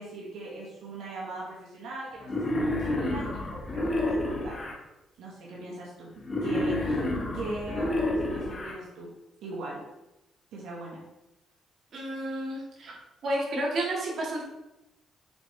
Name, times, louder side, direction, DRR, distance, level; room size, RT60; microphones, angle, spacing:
voice 1, 0.0-4.6 5.2-6.1 6.4-9.1 9.4-9.8 10.5-11.0, right 2 dB, 85° right, -4 dB, 1.5 m, -40 dB
Wild animals, 2.2-4.7 6.2-8.7, left 1 dB, 35° left, 1.2 m, -29 dB
voice 2, 11.9-13.0 13.2-14.4, right 1 dB, 60° right, -2 dB, 1.8 m, -31 dB
7.1 x 4.3 x 3.3 m, 0.97 s
cardioid pair, 90°, 0 cm